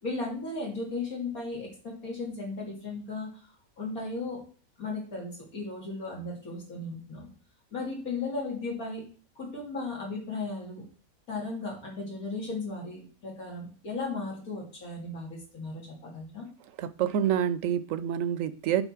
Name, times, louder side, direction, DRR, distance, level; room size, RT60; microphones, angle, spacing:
voice 1, 0.0-3.3 3.8-4.4 4.8-7.3 7.7-9.0 9.4-10.8 11.3-16.5, left 3 dB, 90° left, -3 dB, 3.4 m, -36 dB
voice 2, 16.8-18.8, right 9 dB, 70° right, 14 dB, 0.9 m, -27 dB
8.1 x 3.9 x 6.0 m, 0.39 s
omnidirectional pair, 1.5 m